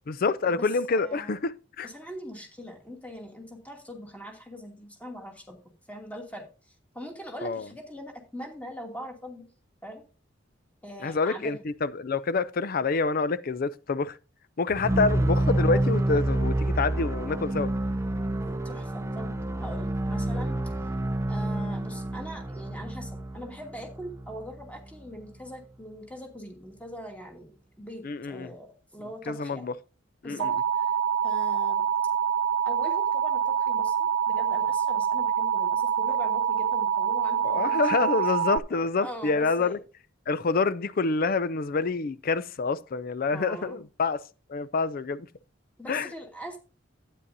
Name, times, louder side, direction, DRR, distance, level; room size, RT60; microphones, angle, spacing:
voice 1, 0.1-1.9 7.4-7.7 11.0-14.2 14.6-17.7 28.0-28.5 29.3-29.7 30.2-30.5 37.4-39.8 40.3-45.3 45.9-46.1, left 4 dB, 50° left, 0.5 m, -27 dB
voice 2, 0.9-1.3 1.8-5.6 5.9-9.4 9.8-10.0 10.8-11.6 18.4-20.7 21.3-29.7 30.2-30.9 31.2-31.9 32.6-34.0 34.3-37.8 38.7-39.8 43.3-43.8 45.8-46.6, equal, 5° left, 2.6 m, -42 dB
sound 1, 14.7-24.7, right 1 dB, 15° right, 0.5 m, -28 dB
Alarm, 30.4-38.6, right 7 dB, 70° right, 0.5 m, -26 dB
12.5 x 10.0 x 2.7 m
head